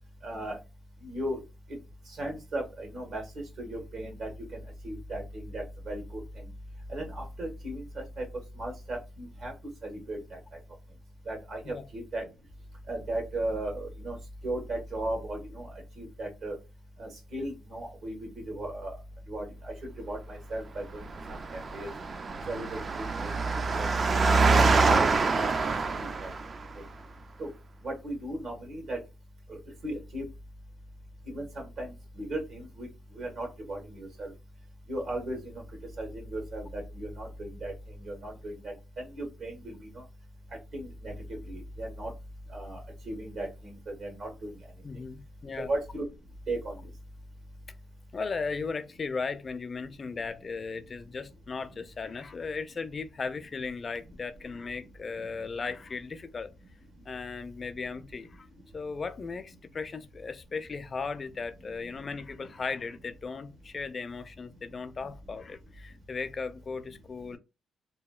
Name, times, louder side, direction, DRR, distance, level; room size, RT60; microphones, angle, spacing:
voice 1, 0.2-0.6 1.0-1.4 2.2-3.2 3.6-6.2 6.9-8.2 8.6-9.5 9.8-10.4 11.3-12.2 12.9-14.2 14.4-15.6 16.0-16.6 17.0-18.9 19.3-21.1 21.5-21.9 22.5-24.2 24.6-25.1 25.6-26.3 27.4-27.5 27.8-29.0 29.5-29.6 29.8-30.2 31.3-32.9 33.1-34.3 34.9-35.6 36.0-37.7 38.0-40.0 40.7-41.1 41.5-42.1 42.5-42.8 43.0-44.5 45.7-46.1 46.5-46.7, right 1 dB, 65° right, 1.3 m, -36 dB
Engine, 21.0-26.7, right 3 dB, 40° right, 0.3 m, -25 dB
voice 2, 44.8-45.7 48.1-56.5 57.1-58.5 58.7-67.4, left 4 dB, 40° left, 0.4 m, -37 dB
2.8 x 2.6 x 2.3 m
cardioid pair, 90°, 0 cm